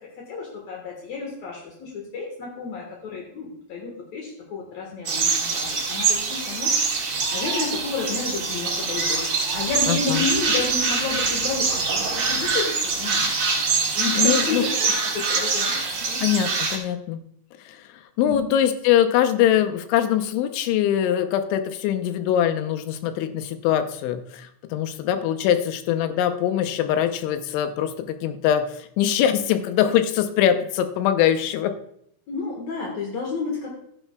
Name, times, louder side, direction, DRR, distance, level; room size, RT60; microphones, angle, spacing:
voice 1, 0.3-6.7 7.3-9.2 9.5-13.6 13.9-16.3 18.2-18.5 32.3-33.7, left 4 dB, 70° left, -1 dB, 1.7 m, -31 dB
sound 1, 5.0-16.8, right 4 dB, 65° right, 1.3 m, -24 dB
voice 2, 9.9-10.3 14.2-14.6 16.2-17.2 17.7-17.9 18.2-31.7, left 10 dB, 85° left, 8 dB, 3.2 m, -22 dB
14.0 x 10.0 x 2.3 m, 0.70 s
omnidirectional pair, 5.3 m